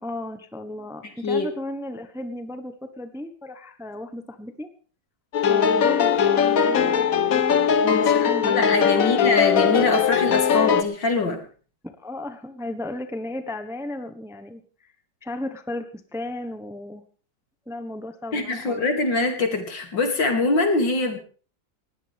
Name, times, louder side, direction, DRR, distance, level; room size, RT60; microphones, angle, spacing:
voice 1, 0.0-4.7 5.5-7.6 8.0-8.6 9.0-9.2 12.0-14.6 15.2-17.0 17.7-18.9, left 1 dB, ahead, 8 dB, 1.0 m, -35 dB
sound 1, 5.3-10.8, left 7 dB, 55° left, 1.4 m, -20 dB
voice 2, 7.8-11.4 18.3-21.2, left 3 dB, 70° left, 4 dB, 3.4 m, -23 dB
19.5 x 18.0 x 3.5 m, 0.41 s
omnidirectional pair, 2.0 m